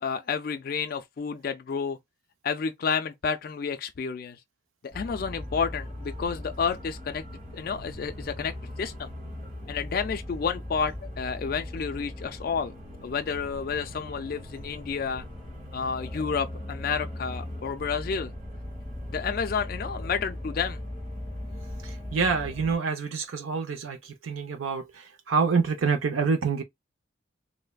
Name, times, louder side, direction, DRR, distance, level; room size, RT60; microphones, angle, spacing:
voice 1, 0.0-2.0 2.4-4.4 4.9-7.2 7.5-9.1 9.7-12.7 13.0-15.3 15.7-18.3 19.1-20.8, left 6 dB, 45° left, 0.3 m, -30 dB
sound 1, 4.9-22.8, left 1 dB, 30° right, 1.7 m, -39 dB
voice 2, 21.8-26.6, right 5 dB, 80° right, 0.5 m, -27 dB
3.2 x 2.0 x 2.2 m
head